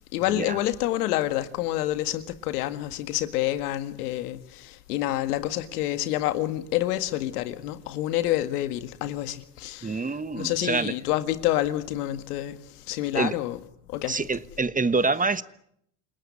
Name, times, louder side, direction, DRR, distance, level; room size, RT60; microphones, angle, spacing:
voice 1, 0.1-12.6 12.9-13.6 13.9-14.2, left 14 dB, 90° left, 2.0 m, -28 dB
voice 2, 9.8-10.9 13.1-13.4 14.1-15.4, right 4 dB, 20° right, 1.3 m, -26 dB
29.0 x 19.0 x 9.7 m
supercardioid pair, 85°, 44 cm